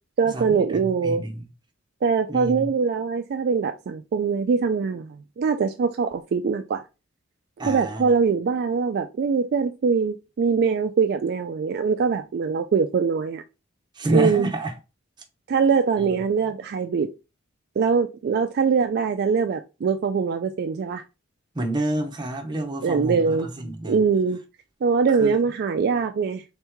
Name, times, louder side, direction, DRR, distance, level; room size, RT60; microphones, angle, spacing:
voice 1, 0.2-1.2 2.0-6.8 7.7-13.4 14.1-14.5 15.5-17.1 17.8-21.0 22.8-23.5 23.8-24.4 24.8-26.4, right 5 dB, 50° right, 0.3 m, -23 dB
voice 2, 0.7-1.4 2.3-2.7 7.6-8.1 14.0-14.7 16.0-16.1 21.5-24.0 25.2-25.4, right 1 dB, 20° right, 0.8 m, -28 dB
3.6 x 3.0 x 3.4 m
head